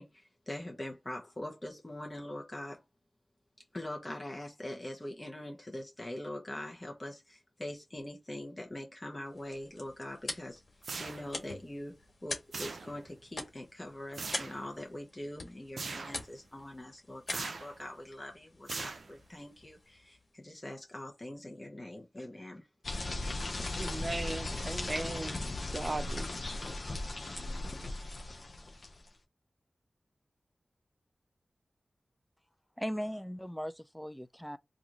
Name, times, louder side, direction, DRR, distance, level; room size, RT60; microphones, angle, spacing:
voice 1, 0.0-2.8 3.7-22.7, left 1 dB, 25° left, 0.9 m, -43 dB
sound 1, 9.2-20.4, left 2 dB, 75° left, 1.4 m, -46 dB
sound 2, 10.8-11.5 12.5-13.2 14.1-14.6 15.8-16.3 17.3-17.8 18.7-19.4, right 4 dB, 85° right, 0.4 m, -41 dB
sound 3, 22.8-29.1, left 2 dB, 60° left, 0.7 m, -37 dB
voice 2, 23.7-25.4 25.7-26.3, right 2 dB, 40° right, 0.6 m, -37 dB
voice 3, 32.8-34.6, equal, 5° left, 0.4 m, -38 dB
3.0 x 2.5 x 3.8 m
wide cardioid pair, 65°, 0 cm